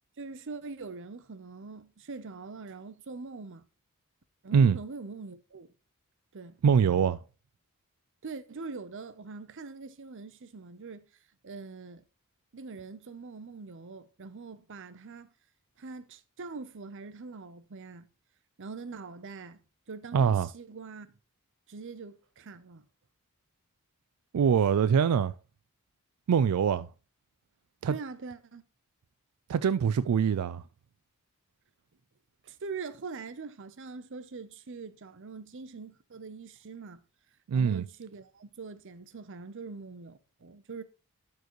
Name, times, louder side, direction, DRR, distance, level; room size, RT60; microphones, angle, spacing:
voice 1, 0.2-3.7 4.4-5.7 6.3-6.6 8.2-11.1 11.4-12.0 12.5-15.3 15.8-18.1 18.6-19.6 19.9-21.2 21.7-22.8 27.9-28.6 32.4-37.0 37.5-40.8, right 4 dB, 55° right, 0.7 m, -43 dB
voice 2, 6.6-7.2 20.1-20.5 24.3-25.3 26.3-26.9 27.8-27.9 29.5-30.6 37.5-37.8, right 7 dB, 90° right, 0.4 m, -23 dB
12.5 x 4.7 x 3.0 m
head